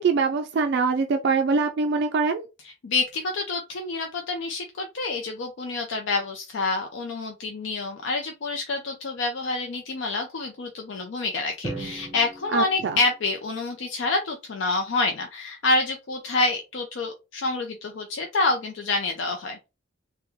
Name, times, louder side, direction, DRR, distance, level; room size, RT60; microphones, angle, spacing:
voice 1, 0.0-2.5 12.5-13.0, right 4 dB, 60° right, 0.3 m, -23 dB
voice 2, 2.8-19.6, left 3 dB, 70° left, 0.5 m, -27 dB
Drum, 11.6-13.8, right 2 dB, 20° right, 1.0 m, -38 dB
3.5 x 2.1 x 2.9 m
head